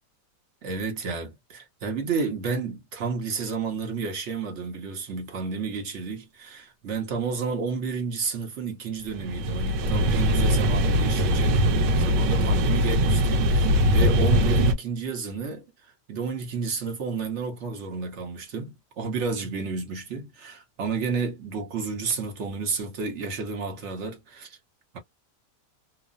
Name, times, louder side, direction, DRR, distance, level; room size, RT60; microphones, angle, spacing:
voice 1, 0.6-15.6 16.1-24.6 24.9-25.0, right 4 dB, 50° right, 1.0 m, -31 dB
sound 1, 9.1-14.7, equal, 90° right, 1.3 m, -21 dB
3.1 x 2.1 x 2.4 m
omnidirectional pair, 1.8 m